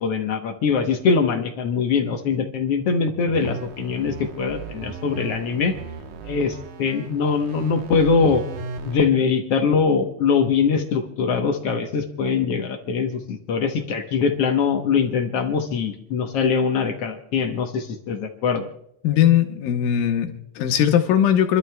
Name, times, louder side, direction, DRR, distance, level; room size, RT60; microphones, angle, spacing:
voice 1, 0.0-5.8 6.2-8.4 8.8-18.7, left 5 dB, 65° left, 5 dB, 1.6 m, -22 dB
sound 1, 3.3-9.1, right 4 dB, 75° right, 2.5 m, -36 dB
voice 2, 19.0-21.6, left 10 dB, 85° left, 5 dB, 2.8 m, -19 dB
29.0 x 12.5 x 2.3 m, 0.72 s
omnidirectional pair, 3.9 m